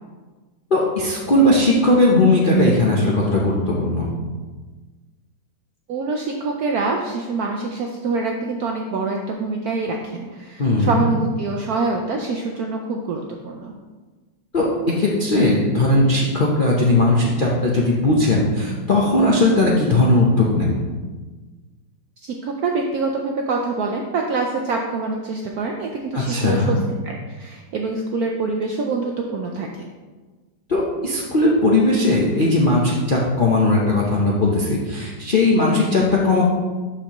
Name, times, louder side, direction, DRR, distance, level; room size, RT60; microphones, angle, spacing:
voice 1, 0.7-4.1 10.6-11.1 14.5-14.7 15.0-20.8 26.1-26.8 30.7-36.4, left 2 dB, 50° left, -5 dB, 0.6 m, -18 dB
voice 2, 5.9-13.7 22.2-26.8 27.0-29.9, right 3 dB, 65° right, 1 dB, 0.9 m, -25 dB
12.0 x 4.5 x 3.0 m, 1.3 s
omnidirectional pair, 2.1 m